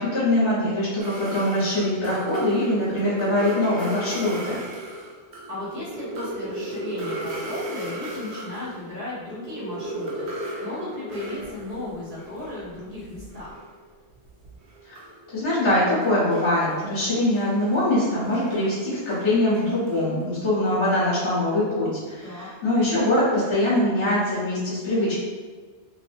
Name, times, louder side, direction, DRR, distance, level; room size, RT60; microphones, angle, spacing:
voice 1, 0.0-4.6 14.9-15.0 15.3-25.2, left 1 dB, 60° left, -9 dB, 1.1 m, -23 dB
sound 1, 1.0-8.9 9.2-13.9 14.1-20.2, right 1 dB, 75° right, 0.9 m, -35 dB
voice 2, 5.5-13.5 22.2-22.5, left 2 dB, 35° right, -9 dB, 1.1 m, -35 dB
2.7 x 2.5 x 2.5 m, 1.4 s
omnidirectional pair, 1.1 m